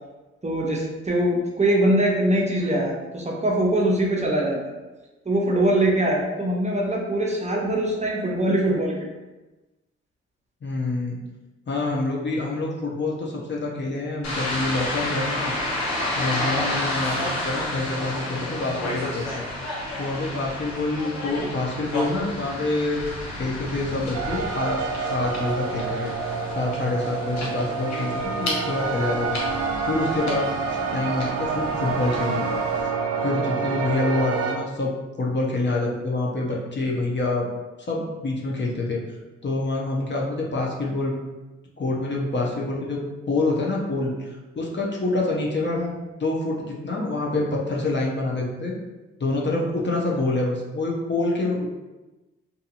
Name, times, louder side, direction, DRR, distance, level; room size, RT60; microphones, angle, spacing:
voice 1, 0.4-4.7 5.3-9.1 45.7-45.9, right 1 dB, 20° right, -2 dB, 0.8 m, -22 dB
voice 2, 10.6-11.2 11.7-15.5 16.2-19.5 20.0-23.1 23.4-29.4 29.8-30.5 30.9-32.6 33.2-34.9 35.2-37.5 37.9-39.0 39.4-41.1 41.8-45.8 46.2-48.7 49.2-51.7, left 2 dB, 35° left, -3 dB, 0.7 m, -26 dB
sound 1, 14.2-32.8, left 1 dB, 60° left, 1.0 m, -31 dB
sound 2, 24.1-34.6, right 5 dB, 55° right, 0.5 m, -27 dB
2.6 x 2.6 x 2.5 m, 1.1 s
hypercardioid pair, 45°, 31 cm